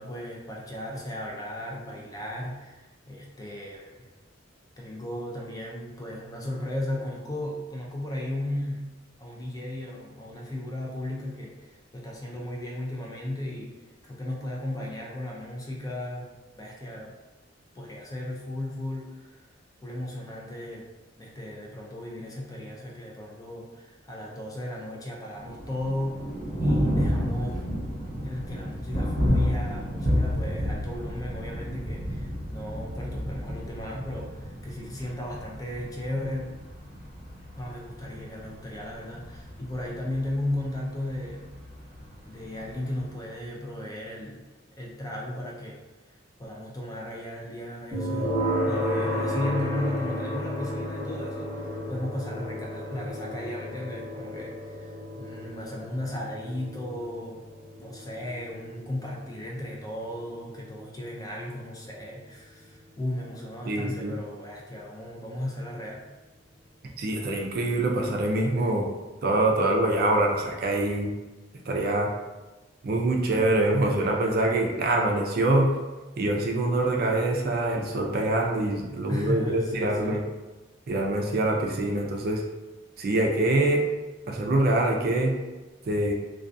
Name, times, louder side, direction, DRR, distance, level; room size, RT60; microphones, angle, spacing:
voice 1, 0.0-4.0 4.8-13.8 14.0-16.3 16.6-17.1 17.7-19.4 19.8-20.9 21.2-26.2 26.6-27.7 28.2-36.5 37.5-41.6 42.2-44.5 44.8-45.8 46.4-48.4 48.6-57.4 57.8-66.1 79.1-80.3, left 1 dB, 20° left, -2 dB, 0.4 m, -35 dB
Thunder, 25.4-43.4, equal, 55° left, 1.2 m, -31 dB
sound 1, 47.9-62.8, equal, 10° right, 0.8 m, -33 dB
voice 2, 63.7-64.1 67.0-68.9 69.2-71.1 71.7-72.1 72.8-75.7 76.2-80.2 80.9-82.4 83.0-83.8 84.3-85.3 85.9-86.1, right 2 dB, 50° right, 0 dB, 0.4 m, -24 dB
2.3 x 2.3 x 2.5 m, 1.2 s
head